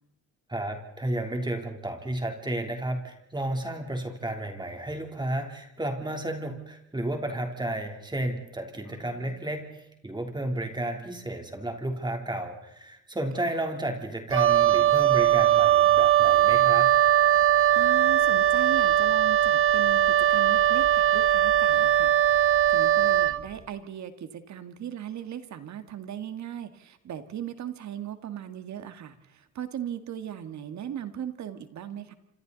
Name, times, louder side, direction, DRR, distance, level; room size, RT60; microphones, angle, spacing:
voice 1, 0.5-16.9, right 1 dB, 15° right, 3 dB, 3.4 m, -32 dB
voice 2, 8.9-9.5 17.7-32.1, right 9 dB, 65° right, 10 dB, 1.9 m, -38 dB
Wind instrument woodwind instrument, 14.3-23.4, right 11 dB, 45° right, 1.1 m, -20 dB
28.5 x 26.0 x 4.1 m, 0.84 s
cardioid pair, 90°, 30 cm